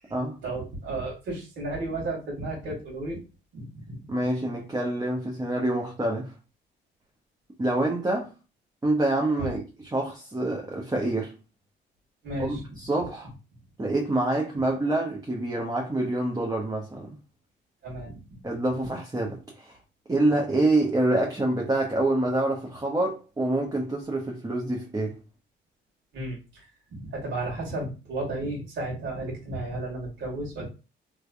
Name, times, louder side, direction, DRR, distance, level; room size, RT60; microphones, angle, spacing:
voice 1, 0.4-3.2 3.5-4.0 9.4-9.5 12.2-12.6 17.8-18.2 26.1-26.6 26.9-30.6, right 2 dB, 70° right, 2.2 m, -33 dB
voice 2, 4.1-6.3 7.6-8.3 8.8-11.3 12.4-13.3 13.8-17.2 18.4-19.8 20.1-25.2, right 2 dB, 20° right, 0.8 m, -26 dB
3.4 x 3.1 x 2.6 m
cardioid pair, 90°, 20 cm